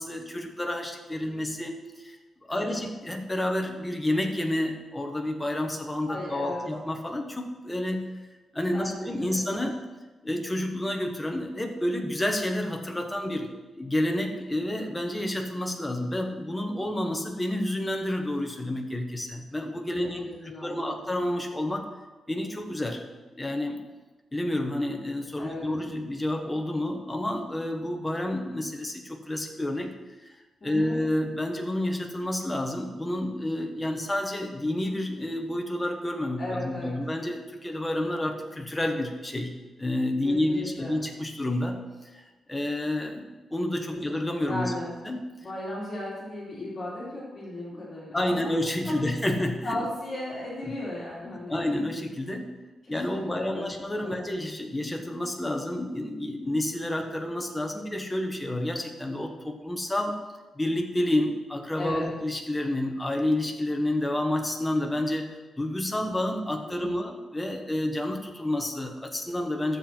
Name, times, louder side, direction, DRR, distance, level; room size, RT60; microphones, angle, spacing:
voice 1, 0.0-2.2 2.5-8.1 8.5-9.8 10.2-20.2 20.6-21.9 22.3-23.0 23.3-23.8 24.3-29.9 30.6-39.5 39.8-41.8 42.5-44.7 45.0-45.2 47.7-47.8 48.1-49.8 51.2-52.5 52.9-60.2 60.5-65.3 65.6-69.8, left 1 dB, 10° left, 3 dB, 1.1 m, -29 dB
voice 2, 6.1-6.6 8.7-8.9 9.2-9.4 19.9-21.0 25.4-25.7 30.6-31.0 36.4-36.9 40.2-40.9 43.9-44.0 44.4-44.9 45.4-48.6 48.8-49.1 49.6-51.6 52.8-53.7 54.0-54.2 61.8-62.1 66.6-67.0, left 1 dB, 35° left, -6 dB, 3.4 m, -36 dB
12.0 x 7.6 x 4.4 m, 1.2 s
wide cardioid pair, 145°, 0 cm